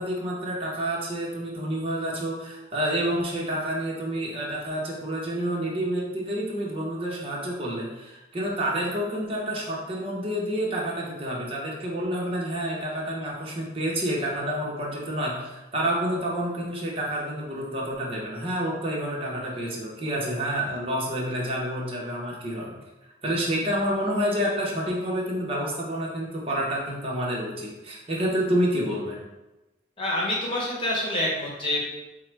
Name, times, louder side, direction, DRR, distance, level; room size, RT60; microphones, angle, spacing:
voice 1, 0.0-22.7 23.2-29.2, equal, 30° right, -3 dB, 0.9 m, -29 dB
voice 2, 30.0-31.8, left 1 dB, 30° left, -4 dB, 1.1 m, -27 dB
4.6 x 2.1 x 4.5 m, 1.0 s
head